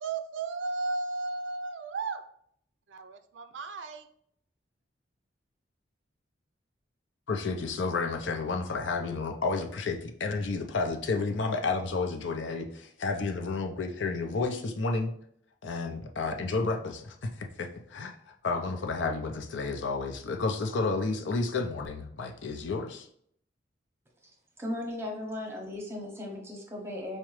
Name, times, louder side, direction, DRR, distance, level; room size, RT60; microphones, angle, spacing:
voice 1, 0.0-2.3 2.9-4.1, right 3 dB, 80° right, 9 dB, 0.4 m, -34 dB
voice 2, 7.3-15.1 15.6-23.1, left 3 dB, 85° left, 4 dB, 0.5 m, -31 dB
voice 3, 24.6-27.2, left 1 dB, 15° right, 0 dB, 0.7 m, -36 dB
4.8 x 2.1 x 3.0 m, 0.65 s
head